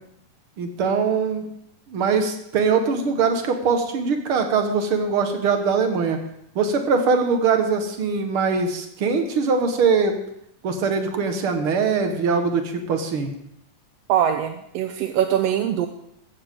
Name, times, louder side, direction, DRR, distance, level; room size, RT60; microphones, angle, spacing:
voice 1, 0.6-1.5 1.9-6.2 6.6-10.2 10.6-13.3, right 5 dB, 50° right, 5 dB, 2.1 m, -22 dB
voice 2, 14.1-15.9, right 10 dB, 75° right, 7 dB, 1.5 m, -22 dB
15.0 x 15.0 x 3.8 m, 0.74 s
omnidirectional pair, 3.5 m